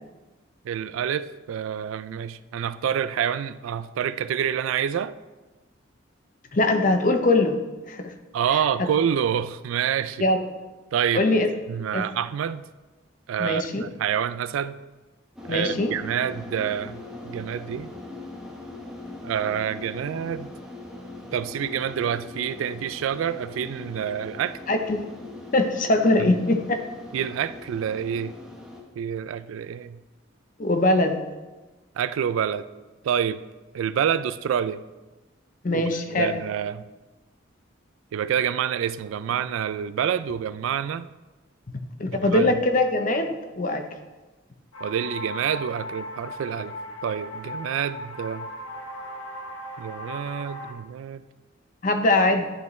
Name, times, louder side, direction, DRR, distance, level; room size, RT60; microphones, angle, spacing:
voice 1, 0.6-5.1 8.3-10.3 10.9-11.3 11.7-12.6 13.3-14.8 15.5-17.9 19.2-20.5 21.3-24.6 26.2-26.3 27.1-28.3 29.0-30.0 31.9-32.7 33.0-33.4 33.7-34.8 35.7-36.9 38.1-41.1 42.2-42.5 44.8-46.7 47.0-48.5 49.8-51.2, right 8 dB, 80° right, 14 dB, 0.3 m, -27 dB
voice 2, 6.5-7.6 7.9-8.1 10.2-10.4 11.1-11.5 11.9-12.0 13.4-13.8 15.5-15.9 24.7-25.0 25.5-26.8 30.6-31.2 35.6-36.3 42.0-43.8 51.8-52.5, left 2 dB, 40° left, 6 dB, 0.6 m, -22 dB
sound 1, 15.4-28.8, left 2 dB, 5° right, 1.0 m, -41 dB
sound 2, 44.7-50.7, left 1 dB, 85° left, 1.2 m, -37 dB
10.5 x 5.4 x 3.1 m, 1.2 s
head